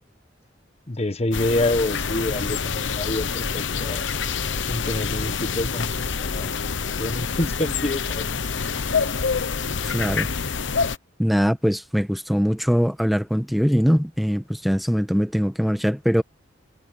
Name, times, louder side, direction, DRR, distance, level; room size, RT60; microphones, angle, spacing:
voice 1, 0.9-4.1 4.5-8.4, left 1 dB, 35° left, 1.2 m, -27 dB
sound 1, 1.3-11.0, left 5 dB, 75° left, 1.0 m, -26 dB
voice 2, 9.9-10.3 11.2-16.2, equal, ahead, 1.2 m, -22 dB
head